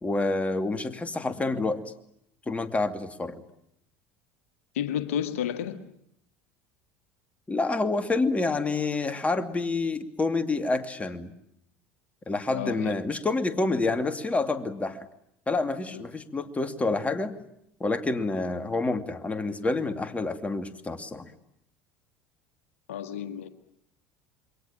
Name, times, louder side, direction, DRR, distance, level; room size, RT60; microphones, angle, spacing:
voice 1, 0.0-1.8 2.5-3.4 7.5-11.3 12.3-15.1 15.5-17.3 17.8-21.3, left 3 dB, 20° left, 2.5 m, -28 dB
voice 2, 4.7-5.8 12.5-12.9 15.9-16.0 22.9-23.5, left 9 dB, 75° left, 1.7 m, -31 dB
28.0 x 23.0 x 8.7 m
hypercardioid pair, 70°, 7 cm